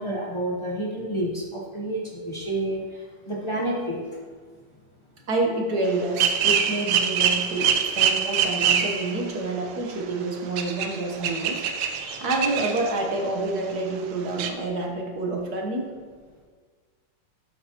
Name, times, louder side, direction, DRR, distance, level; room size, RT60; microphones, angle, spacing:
voice 1, 0.0-4.2 12.0-12.2, right 1 dB, 50° left, -3 dB, 0.3 m, -30 dB
voice 2, 5.3-11.6 12.2-15.9, right 2 dB, 55° right, 1 dB, 1.5 m, -28 dB
sound 1, 5.9-9.3 9.7-9.8 10.1-10.2 10.6-13.0 13.3-13.4 13.7-13.8 14.0-14.1 14.4-14.5, right 8 dB, 85° right, 1.6 m, -24 dB
12.0 x 7.6 x 2.9 m, 1.5 s
omnidirectional pair, 2.4 m